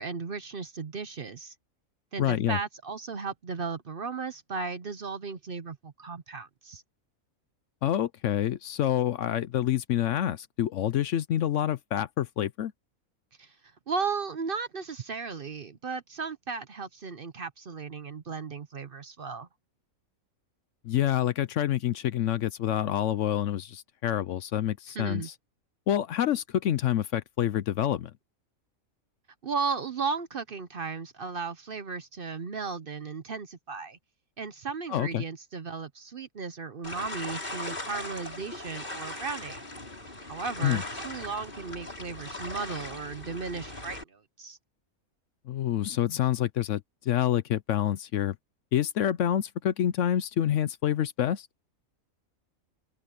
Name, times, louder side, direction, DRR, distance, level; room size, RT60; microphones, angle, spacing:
voice 1, 0.0-1.5 2.1-6.8 13.4-13.5 13.9-19.5 24.9-25.3 29.4-34.0 34.4-39.6 40.2-44.6, right 5 dB, 45° right, 0.9 m, -35 dB
voice 2, 2.2-2.6 7.8-12.7 20.8-25.3 25.9-28.1 34.9-35.2 40.6-40.8 45.5-48.3 48.7-51.5, left 11 dB, 65° left, 0.9 m, -27 dB
sound 1, 36.8-44.0, left 1 dB, 35° left, 5.0 m, -39 dB
open air
omnidirectional pair, 1.5 m